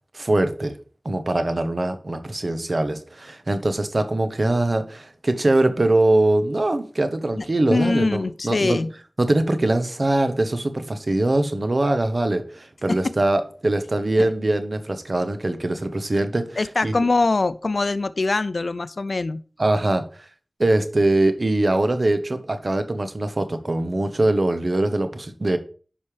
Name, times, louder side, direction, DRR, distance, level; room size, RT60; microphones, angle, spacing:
voice 1, 0.1-0.8 1.0-8.8 9.2-17.0 19.6-20.1 20.6-25.6, right 2 dB, 60° right, 1.0 m, -22 dB
voice 2, 7.4-8.9 12.9-13.0 14.2-14.3 16.6-19.4, left 3 dB, 85° left, 0.4 m, -23 dB
10.0 x 5.4 x 3.3 m
wide cardioid pair, 40°, 0 cm